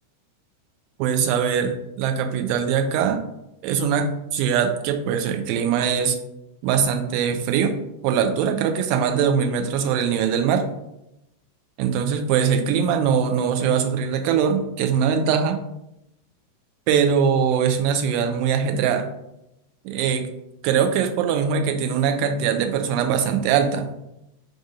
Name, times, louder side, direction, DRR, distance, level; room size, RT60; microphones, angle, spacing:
voice 1, 1.0-3.2 3.6-6.2 6.6-7.7 8.0-10.6 11.8-15.6 16.9-19.1 19.8-20.3 20.6-23.9, right 7 dB, 45° right, 5 dB, 0.4 m, -22 dB
2.4 x 2.4 x 3.9 m, 0.86 s
figure-of-eight pair, 90°, 0 cm